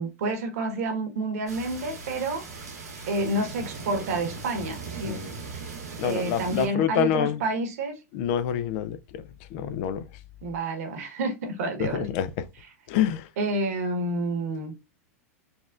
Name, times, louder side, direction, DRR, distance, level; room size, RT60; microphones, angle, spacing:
voice 1, 0.0-2.4 3.1-5.2 6.0-8.0 10.4-12.0 13.4-14.7, right 2 dB, 70° right, 1.3 m, -29 dB
sound 1, 1.5-6.7, right 4 dB, 90° right, 1.6 m, -39 dB
voice 2, 5.1-5.4 6.0-7.4 8.1-9.2 9.5-10.1 11.8-12.5 12.9-13.3, left 9 dB, 50° left, 0.5 m, -27 dB
4.0 x 2.4 x 2.4 m
hypercardioid pair, 115°, 8 cm